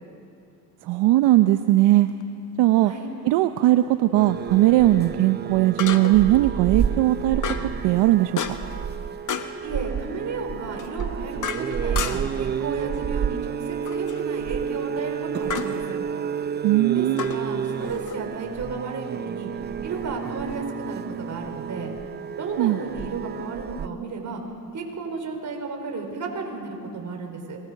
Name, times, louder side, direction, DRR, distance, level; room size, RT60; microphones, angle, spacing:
voice 1, 0.8-2.1 2.6-2.9 3.2-8.6 16.6-17.3 22.6-22.8, right 15 dB, 75° right, 9 dB, 0.8 m, -19 dB
sound 1, 2.1-2.2 5.8-6.3 7.4-7.8 8.4-8.8 9.3-9.6 10.8-12.4 13.8-14.2 15.5-15.8 17.2-18.2, left 7 dB, 45° left, 1.4 m, -32 dB
sound 2, 4.1-23.9, right 7 dB, 25° right, 0.5 m, -30 dB
voice 2, 9.6-16.0 16.9-19.5 19.8-21.9 22.4-24.4 24.7-27.6, right 4 dB, 40° right, 2 dB, 4.9 m, -33 dB
26.0 x 21.5 x 6.5 m, 2.5 s
supercardioid pair, 95°, 43 cm